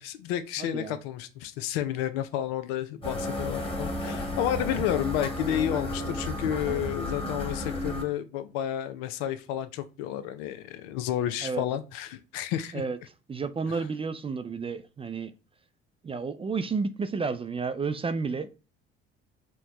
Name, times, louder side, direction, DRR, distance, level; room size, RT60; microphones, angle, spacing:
voice 1, 0.0-12.8 13.7-13.8, left 11 dB, 80° left, 0.5 m, -31 dB
voice 2, 0.6-1.0 11.4-11.6 12.7-13.0 13.3-15.3 16.0-18.5, right 4 dB, 20° right, 0.3 m, -31 dB
sound 1, 3.0-8.0, left 1 dB, 20° left, 1.3 m, -32 dB
4.4 x 2.1 x 2.9 m
hypercardioid pair, 60°, 30 cm